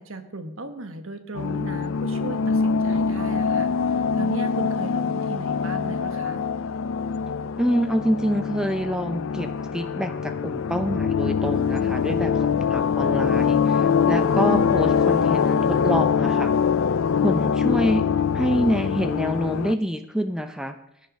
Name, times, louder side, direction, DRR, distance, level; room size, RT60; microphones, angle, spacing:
voice 1, 0.0-6.4, right 2 dB, 65° right, 8 dB, 1.3 m, -37 dB
sound 1, 1.4-19.7, left 6 dB, 65° left, 0.4 m, -23 dB
voice 2, 7.6-16.5 17.2-18.0 18.3-20.8, equal, 5° right, 8 dB, 0.6 m, -26 dB
17.5 x 10.0 x 5.3 m, 0.80 s
head